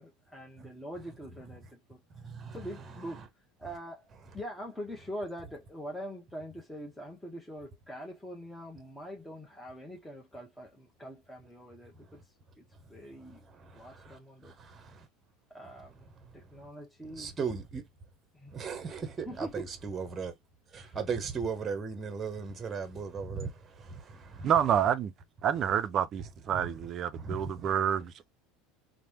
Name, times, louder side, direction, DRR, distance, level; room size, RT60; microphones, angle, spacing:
voice 1, 0.0-2.0 2.5-3.2 3.6-12.2 12.6-13.4 13.7-14.5 15.5-17.6 18.3-18.5 19.2-19.7 20.8-21.0, equal, 5° left, 0.9 m, -43 dB
voice 2, 2.1-2.6 3.0-3.3 13.4-15.1 17.0-17.8 18.5-20.3 20.7-24.5 26.5-26.9 27.1-27.8, right 5 dB, 30° right, 0.8 m, -38 dB
voice 3, 24.4-25.1 25.4-28.3, right 9 dB, 45° right, 0.4 m, -28 dB
3.2 x 2.1 x 2.8 m
hypercardioid pair, 90°, 0 cm